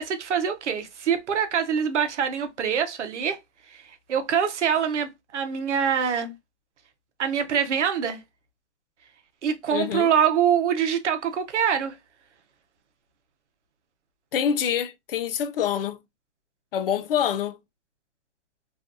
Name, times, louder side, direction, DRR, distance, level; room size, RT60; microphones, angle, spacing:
voice 1, 0.0-3.4 3.7-3.8 4.1-6.3 7.2-8.2 9.4-12.0, right 8 dB, 90° right, 0.7 m, -24 dB
voice 2, 9.7-10.1 14.3-16.0 16.7-17.6, left 9 dB, 55° left, 0.4 m, -26 dB
2.5 x 2.3 x 2.4 m
hypercardioid pair, 140°, 34 cm